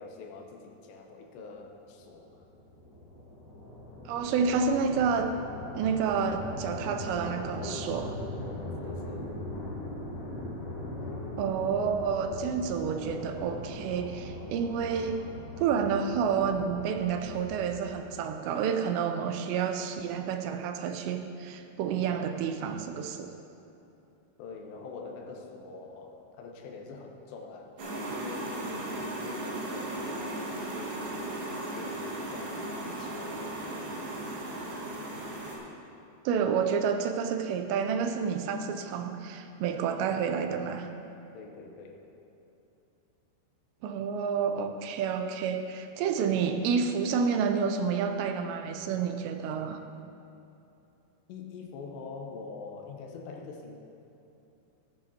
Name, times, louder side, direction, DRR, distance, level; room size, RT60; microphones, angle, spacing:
voice 1, 0.0-2.5 8.8-9.3 24.4-31.3 31.7-33.8 41.3-42.0 51.3-53.8, left 4 dB, 80° left, 2 dB, 3.1 m, -45 dB
sound 1, 1.8-18.1, left 1 dB, 60° left, 1.7 m, -40 dB
voice 2, 4.1-5.3 5.7-8.2 11.4-15.3 15.6-23.4 32.9-33.0 36.3-40.9 43.8-49.8, right 6 dB, 85° right, 6 dB, 2.7 m, -29 dB
sound 2, 27.8-35.6, right 1 dB, 65° right, 3.3 m, -36 dB
14.5 x 10.5 x 2.8 m, 2.8 s
omnidirectional pair, 5.1 m